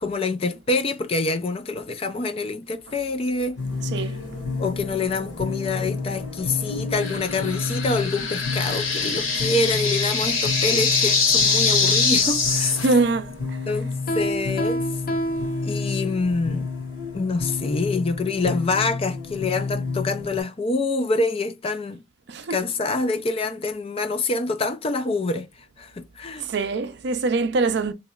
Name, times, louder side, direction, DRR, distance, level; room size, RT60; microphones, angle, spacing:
voice 1, 0.0-3.6 4.0-4.1 4.6-12.8 13.7-14.8 15.6-16.7 17.1-22.0 22.5-25.5 25.8-26.5, left 3 dB, 30° left, 0.3 m, -26 dB
sound 1, 3.6-20.4, left 4 dB, 65° left, 1.7 m, -30 dB
voice 2, 3.9-4.3 12.8-13.6 22.3-22.6 26.4-27.9, right 3 dB, 55° right, 0.5 m, -23 dB
sound 2, 7.0-12.9, left 5 dB, 80° left, 1.6 m, -23 dB
Piano, 14.1-16.4, right 1 dB, 45° left, 0.7 m, -28 dB
3.9 x 2.9 x 2.3 m
head